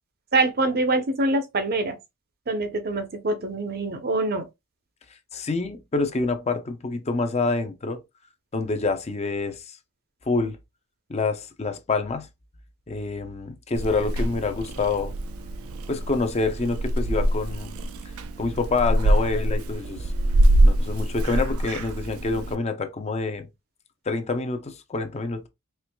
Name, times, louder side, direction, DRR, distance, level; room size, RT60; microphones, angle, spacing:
voice 1, 0.3-2.0 2.5-4.5, right 2 dB, 45° right, 0.7 m, -24 dB
voice 2, 5.3-8.0 8.5-9.8 10.3-10.6 11.1-12.3 12.9-15.1 15.9-17.7 18.4-20.1 20.6-23.5 24.1-25.5, left 3 dB, 30° left, 0.6 m, -27 dB
Purr / Meow, 13.7-22.5, right 1 dB, 80° right, 0.5 m, -24 dB
4.4 x 3.1 x 2.2 m
head